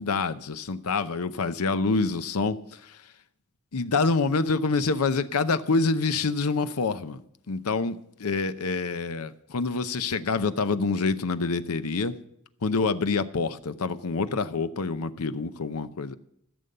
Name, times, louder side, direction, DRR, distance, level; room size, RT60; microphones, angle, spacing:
voice 1, 0.0-2.6 3.7-7.2 7.5-12.1 12.6-16.2, left 4 dB, 75° left, 0.7 m, -26 dB
15.0 x 6.9 x 6.7 m
head